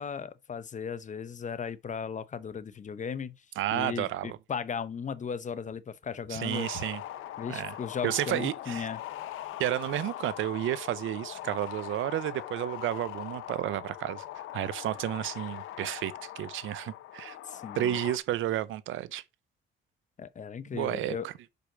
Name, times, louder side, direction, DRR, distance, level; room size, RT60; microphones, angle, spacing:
voice 1, 0.0-3.5 3.7-6.7 7.4-9.0 17.4-18.0 20.2-21.3, left 6 dB, 40° left, 0.7 m, -36 dB
voice 2, 3.6-4.4 6.3-7.0 7.5-7.7 8.0-8.9 9.6-17.4 17.8-19.2 20.7-21.3, right 13 dB, 80° right, 0.6 m, -32 dB
sound 1, 6.5-18.2, left 13 dB, 85° left, 0.9 m, -41 dB
5.9 x 5.2 x 4.9 m
cardioid pair, 90°, 20 cm